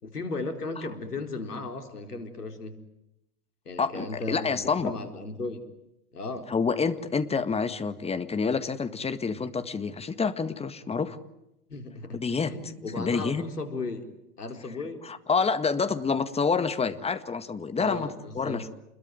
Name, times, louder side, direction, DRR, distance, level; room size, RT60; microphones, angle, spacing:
voice 1, 0.0-2.8 3.7-5.6 6.1-6.5 11.7-12.2 12.5-14.1 14.4-15.0 17.8-18.7, left 3 dB, 80° left, 6 dB, 4.3 m, -35 dB
voice 2, 3.8-4.9 6.5-11.2 12.1-12.5 13.0-13.4 15.1-18.1 18.4-18.7, left 5 dB, 15° left, 11 dB, 1.8 m, -28 dB
29.0 x 22.0 x 9.3 m, 0.86 s
figure-of-eight pair, 95°, 45 cm